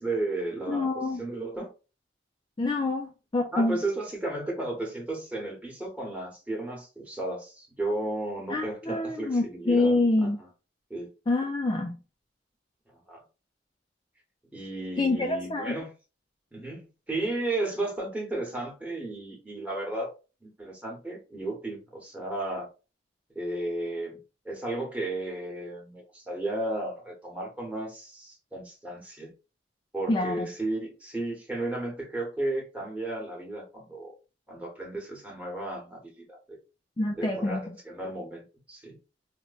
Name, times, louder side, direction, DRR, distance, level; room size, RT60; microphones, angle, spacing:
voice 1, 0.0-0.9 1.2-1.7 3.5-10.5 10.9-11.1 13.1-13.2 14.5-15.9 16.5-20.1 20.4-22.7 23.3-29.3 29.9-34.1 34.5-36.6 37.2-39.0, right 2 dB, 10° right, 1.0 m, -34 dB
voice 2, 0.7-1.2 2.6-3.8 8.5-10.4 11.3-12.0 15.0-15.8 30.1-30.5 37.0-37.7, left 2 dB, 25° left, 0.3 m, -26 dB
4.3 x 2.1 x 2.4 m
head